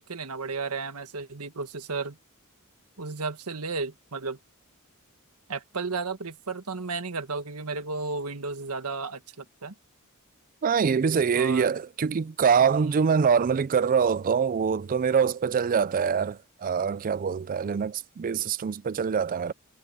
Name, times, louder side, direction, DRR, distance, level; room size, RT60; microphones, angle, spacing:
voice 1, 0.0-2.2 3.0-4.4 5.5-9.7 11.3-11.7 12.6-13.1, right 4 dB, 85° right, 1.6 m, -34 dB
voice 2, 10.6-19.5, right 6 dB, 40° right, 0.4 m, -24 dB
head